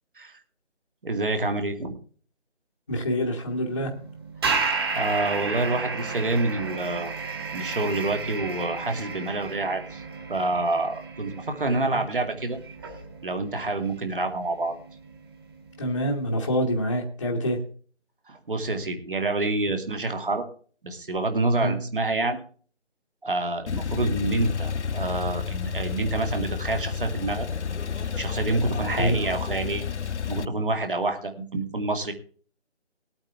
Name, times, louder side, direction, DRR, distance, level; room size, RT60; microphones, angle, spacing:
voice 1, 1.0-2.0 4.7-7.1 7.5-10.0 10.3-12.6 13.2-14.7 18.3-20.4 20.8-22.4 23.2-27.5 28.2-29.9 30.3-32.1, right 2 dB, 45° right, 6 dB, 2.4 m, -27 dB
voice 2, 2.9-3.9 11.8-11.9 15.8-17.6 21.6-21.8 29.0-29.2, equal, 15° left, -5 dB, 1.1 m, -26 dB
sound 1, 3.4-16.4, right 4 dB, 20° right, 2.0 m, -33 dB
Male speech man speaking / Car / Idling, 23.7-30.4, left 6 dB, 70° left, 0.6 m, -30 dB
19.5 x 8.8 x 3.4 m, 0.43 s
figure-of-eight pair, 165°, 36 cm